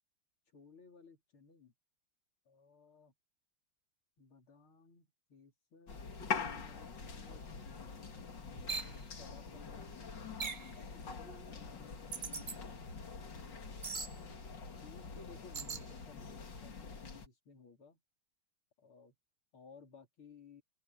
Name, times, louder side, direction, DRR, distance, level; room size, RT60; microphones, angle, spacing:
voice 1, 0.5-1.7 2.5-3.1 4.2-10.0 10.9-12.7 13.3-14.1 14.8-18.0 18.8-19.1 19.5-20.6, left 4 dB, 70° left, 4.4 m, -59 dB
sound 1, 5.9-17.3, left 5 dB, 55° left, 2.9 m, -44 dB
sound 2, 8.7-8.9 10.4-10.7 12.1-12.6 13.8-14.1 15.5-15.9, right 4 dB, 40° right, 0.6 m, -40 dB
open air
omnidirectional pair, 2.4 m